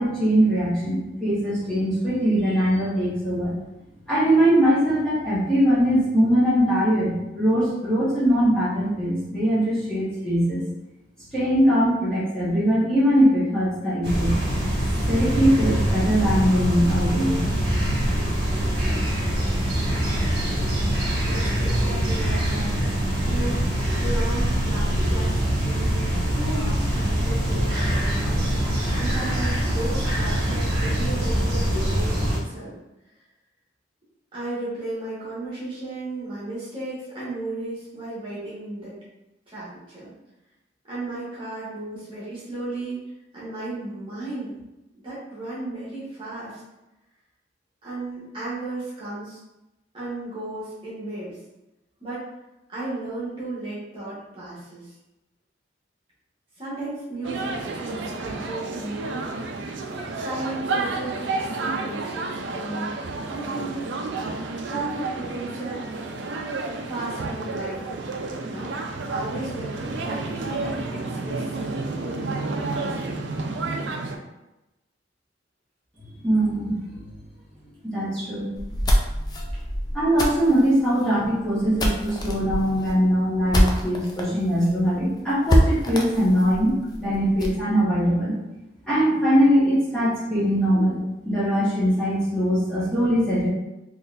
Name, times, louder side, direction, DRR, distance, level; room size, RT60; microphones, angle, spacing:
voice 1, 0.0-3.5 4.1-10.6 11.3-14.4 15.1-17.4 76.2-76.8 77.9-78.5 79.9-88.3 88.9-91.0 91.2-93.5, equal, 5° left, -13 dB, 1.4 m, -21 dB
sound 1, 14.0-32.4, right 1 dB, 55° right, 1.4 m, -24 dB
voice 2, 21.2-28.7 29.0-32.7 34.3-39.0 39.5-40.1 40.9-43.0 43.3-44.6 44.9-46.6 47.8-49.4 49.9-51.4 52.0-52.2 52.7-54.9 56.6-59.3 60.2-63.0 63.3-63.9 64.3-65.8 66.9-67.8 68.4-68.8 69.1-73.1 79.5-79.6, right 2 dB, 30° right, -10 dB, 1.5 m, -34 dB
sound 2, 57.2-74.2, right 3 dB, 75° right, 0.5 m, -31 dB
sound 3, 78.6-84.2 84.6-84.7 85.0-85.1 85.5-87.6, equal, 20° left, 0.4 m, -24 dB
4.0 x 3.1 x 2.5 m, 0.96 s
head